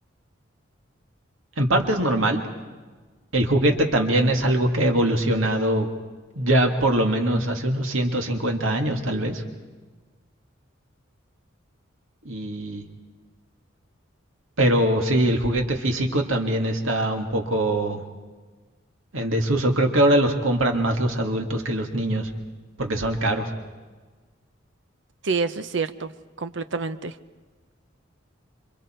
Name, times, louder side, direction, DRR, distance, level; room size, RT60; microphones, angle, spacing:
voice 1, 1.6-2.4 3.3-5.9 6.4-9.4 12.2-12.8 14.6-18.0 19.1-22.3 22.8-23.5, right 1 dB, 80° right, 3 dB, 2.2 m, -22 dB
voice 2, 25.2-26.1 26.4-27.2, right 4 dB, 60° right, 11 dB, 0.8 m, -27 dB
28.0 x 24.5 x 4.5 m, 1.3 s
head